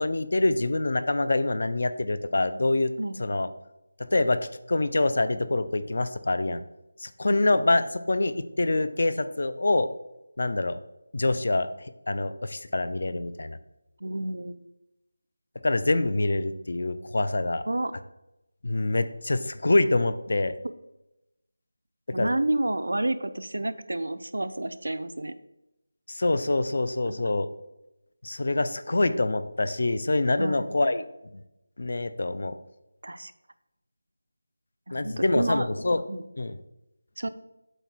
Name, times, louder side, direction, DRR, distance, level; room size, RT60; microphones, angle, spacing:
voice 1, 0.0-2.9 3.2-3.5 4.1-6.6 7.0-9.9 10.4-10.8 11.1-11.7 12.1-13.6 15.6-17.6 18.6-20.5 22.2-22.3 26.1-27.5 28.2-31.0 31.3-31.4 31.8-32.6 34.9-36.0 36.4-36.5, left 2 dB, 50° left, 12 dB, 0.5 m, -25 dB
voice 2, 7.3-7.6 14.0-14.7 17.7-17.9 22.1-25.3 27.0-27.1 30.4-30.7 33.0-33.3 34.9-35.7 36.1-36.3 37.2-37.3, right 1 dB, 85° right, 11 dB, 0.6 m, -30 dB
8.0 x 4.0 x 4.5 m, 0.91 s
figure-of-eight pair, 175°, 0 cm